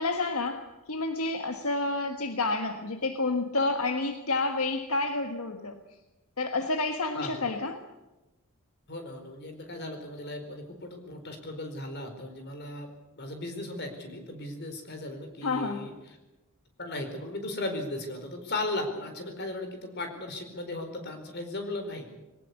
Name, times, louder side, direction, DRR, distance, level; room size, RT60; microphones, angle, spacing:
voice 1, 0.0-5.8 6.4-7.8 15.4-15.9, left 3 dB, 75° left, 6 dB, 1.6 m, -29 dB
voice 2, 8.9-12.9 13.2-16.2 16.8-22.1, left 2 dB, 50° left, 6 dB, 4.6 m, -36 dB
21.5 x 18.5 x 8.3 m, 1.0 s
head